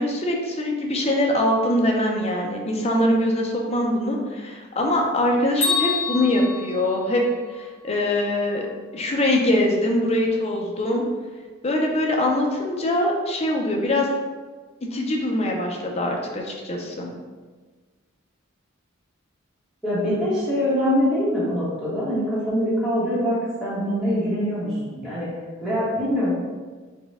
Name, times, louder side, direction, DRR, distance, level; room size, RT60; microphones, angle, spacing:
voice 1, 0.0-7.2 7.5-8.7 8.9-11.0 11.6-14.1 14.9-17.1, left 1 dB, 30° left, 0 dB, 0.5 m, -23 dB
Bell, 5.6-7.6, left 5 dB, 60° left, 1.2 m, -27 dB
voice 2, 19.8-25.3 25.6-26.3, equal, ahead, -11 dB, 1.0 m, -24 dB
4.2 x 2.3 x 3.5 m, 1.4 s
head